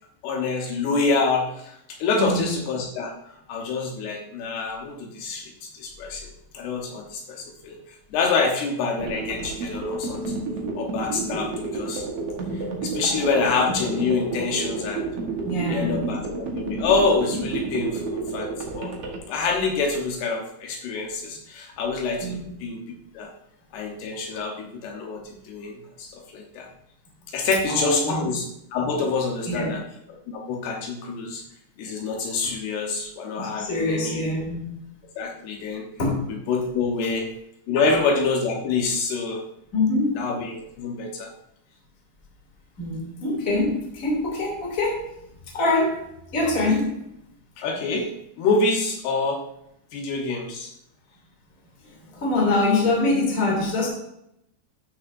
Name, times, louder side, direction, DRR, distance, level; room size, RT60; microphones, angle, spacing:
voice 1, 0.2-3.1 3.5-7.8 8.1-10.4 10.8-12.1 12.5-15.1 15.7-18.5 18.7-18.9 19.3-23.3 23.7-26.7 27.3-29.8 30.3-31.4 31.8-34.2 35.2-35.8 36.3-37.3 37.7-39.4 40.2-41.3 47.6-48.1 48.4-49.4 49.9-50.7, left 4 dB, 75° left, 1 dB, 3.0 m, -26 dB
sound 1, 9.0-19.2, right 3 dB, 85° right, 1.3 m, -30 dB
voice 2, 15.4-16.1 22.2-22.5 27.7-28.3 29.5-29.8 32.4-32.5 33.4-34.8 36.0-36.3 37.8-37.9 39.7-40.1 42.8-45.1 45.5-46.0 46.3-47.0 52.1-53.9, left 2 dB, 25° left, -2 dB, 2.4 m, -24 dB
13.0 x 6.3 x 2.6 m, 0.78 s
omnidirectional pair, 5.0 m